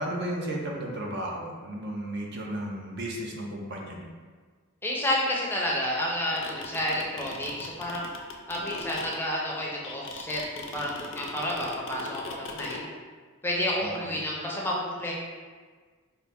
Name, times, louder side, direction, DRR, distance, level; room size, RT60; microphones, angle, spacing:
voice 1, 0.0-4.1 13.8-14.2, right 1 dB, 50° right, -1 dB, 0.6 m, -34 dB
voice 2, 4.8-8.1 8.5-12.9 13.4-15.1, left 1 dB, 10° left, -3 dB, 0.5 m, -30 dB
sound 1, 6.1-12.8, left 4 dB, 60° left, 0.5 m, -39 dB
4.3 x 2.5 x 3.4 m, 1.5 s
head